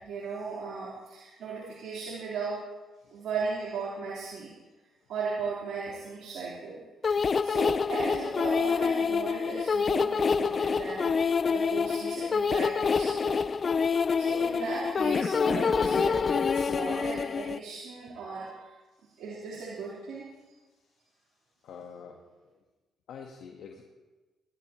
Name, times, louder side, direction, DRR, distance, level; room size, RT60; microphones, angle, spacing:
voice 1, 0.0-2.6 3.1-4.5 5.1-11.2 11.5-13.5 14.2-18.7 19.2-20.3, right 4 dB, 75° right, -8 dB, 4.0 m, -37 dB
sound 1, 7.0-17.6, left 5 dB, 40° left, 0.4 m, -27 dB
voice 2, 21.6-22.6 23.1-23.8, left 6 dB, 75° left, 2 dB, 1.5 m, -48 dB
22.0 x 12.5 x 3.1 m, 1.2 s
cardioid pair, 90°, 0 cm